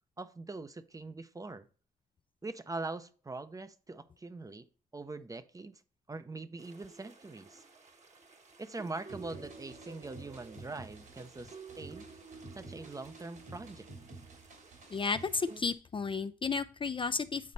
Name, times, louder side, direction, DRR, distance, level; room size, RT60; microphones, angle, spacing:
voice 1, 0.2-1.7 2.4-4.7 4.9-5.8 6.1-7.6 8.6-12.1 12.5-13.9, right 3 dB, 20° right, 0.6 m, -43 dB
sound 1, 6.6-15.6, right 4 dB, 45° right, 1.2 m, -52 dB
sound 2, 9.1-15.7, right 3 dB, 75° right, 3.2 m, -52 dB
voice 2, 14.9-17.5, left 5 dB, 30° left, 0.4 m, -33 dB
8.6 x 4.1 x 4.0 m
cardioid pair, 85°, 16 cm